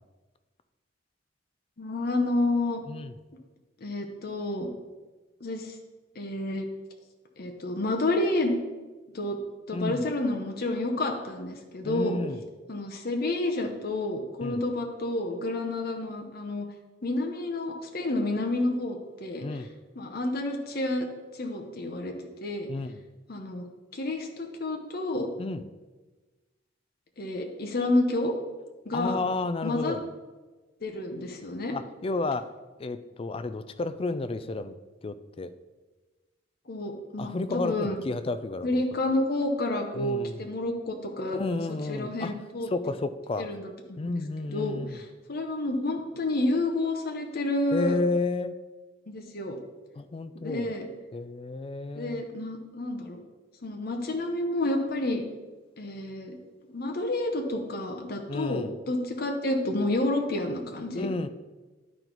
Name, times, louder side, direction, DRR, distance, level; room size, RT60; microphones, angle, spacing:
voice 1, 1.8-2.8 3.8-4.7 5.4-5.8 6.2-6.7 7.4-8.6 9.1-9.4 9.7-12.2 12.7-16.6 17.0-19.4 20.0-21.1 21.3-22.1 22.4-22.7 23.3-25.3 27.2-28.3 28.8-29.2 29.6-30.0 30.8-31.7 36.7-38.0 38.6-41.4 41.9-42.7 43.4-44.1 44.5-48.0 49.1-49.6 50.3-50.9 51.9-53.2 53.6-55.3 55.8-56.4 56.7-61.1, left 2 dB, 50° left, 3 dB, 0.8 m, -29 dB
voice 2, 9.7-10.0 11.8-12.4 14.4-14.7 19.4-19.7 22.7-23.0 25.4-25.6 28.9-30.0 31.7-32.5 32.8-34.8 35.0-35.5 37.2-38.8 40.0-40.5 41.3-42.3 42.7-43.5 44.0-45.0 47.7-48.6 50.0-50.7 51.1-52.2 58.3-58.7 61.0-61.3, left 3 dB, 30° left, 12 dB, 0.3 m, -31 dB
11.0 x 4.5 x 3.9 m, 1.2 s
head